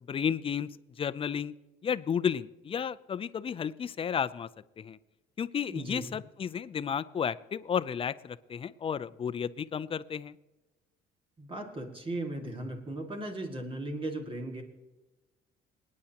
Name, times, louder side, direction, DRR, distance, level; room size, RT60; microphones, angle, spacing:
voice 1, 0.1-0.7 1.0-1.5 1.8-4.5 4.8-5.0 5.4-10.4, left 7 dB, 35° left, 16 dB, 0.5 m, -32 dB
voice 2, 5.7-6.2 11.4-14.6, right 1 dB, 30° right, 4 dB, 2.1 m, -37 dB
27.5 x 9.7 x 2.9 m, 1.1 s
cardioid pair, 110°, 17 cm